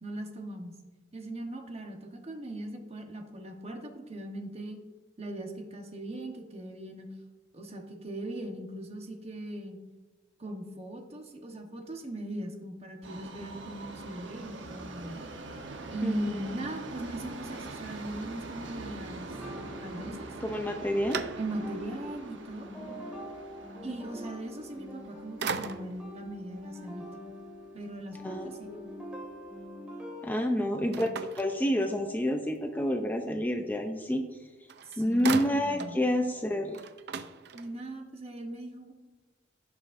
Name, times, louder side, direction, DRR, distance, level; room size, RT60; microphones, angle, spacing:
voice 1, 0.0-0.8 1.1-4.8 5.2-7.1 7.5-9.8 10.4-15.2 15.9-19.4 19.8-20.4 21.4-22.7 23.8-27.1 27.7-28.8 30.5-31.1 34.8-36.0 37.5-38.9, right 1 dB, 35° right, 2 dB, 1.2 m, -39 dB
Subway metro underground, 13.0-27.1 27.5-27.6 28.4-28.5 28.8-28.9 29.5-29.6, right 2 dB, 80° right, 1.0 m, -44 dB
voice 2, 16.0-16.4 20.4-21.2 28.2-28.8 30.2-31.1 31.4-34.2 35.0-36.8, equal, 10° left, 4 dB, 0.5 m, -29 dB
sound 1, 19.2-21.0 21.4-30.3, equal, 5° right, 2.1 m, -44 dB
sound 2, 20.4-21.9 22.4-22.5 24.8-25.1 25.4-26.1 30.9-32.2 34.3-34.4 34.7-36.0 36.4-36.5 36.7-38.0, right 5 dB, 65° right, 0.5 m, -38 dB
16.0 x 6.1 x 2.6 m, 1.2 s
head